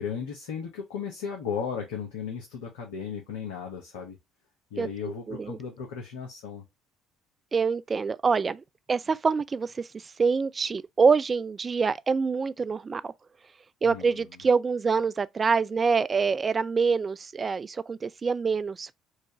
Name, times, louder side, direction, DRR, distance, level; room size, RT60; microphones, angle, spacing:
voice 1, 0.0-4.2 4.7-6.6 13.8-14.1, left 7 dB, 80° left, 1.0 m, -35 dB
voice 2, 4.8-5.6 7.5-13.1 13.8-18.9, right 5 dB, 35° right, 0.4 m, -26 dB
4.6 x 2.5 x 2.8 m
hypercardioid pair, 55°, 0 cm